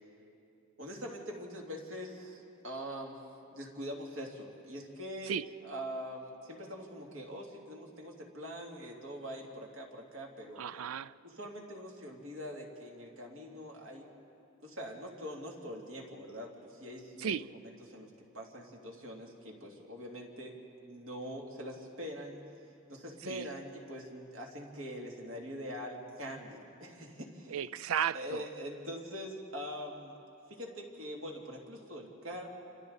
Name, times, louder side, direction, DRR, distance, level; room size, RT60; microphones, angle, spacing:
voice 1, 0.8-10.7 11.2-14.1 14.6-22.4 22.9-27.6 28.1-30.2 30.5-32.5, equal, 65° right, -1 dB, 2.9 m, -43 dB
voice 2, 10.6-11.1 17.2-17.5 23.2-23.5 27.5-28.4, right 8 dB, 80° right, 17 dB, 0.4 m, -34 dB
29.0 x 26.0 x 4.1 m, 2.7 s
head